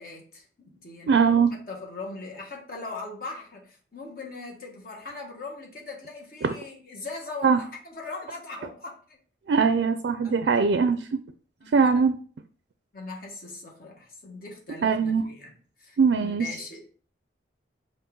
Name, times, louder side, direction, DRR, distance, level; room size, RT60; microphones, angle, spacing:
voice 1, 0.0-9.2 10.2-10.6 11.6-12.1 12.9-16.9, left 3 dB, 50° left, 1.2 m, -40 dB
voice 2, 1.1-1.6 6.4-6.5 7.4-7.6 9.5-11.2 11.7-12.2 14.8-15.2 16.0-16.5, right 5 dB, 75° right, 0.4 m, -21 dB
5.2 x 2.6 x 3.7 m
head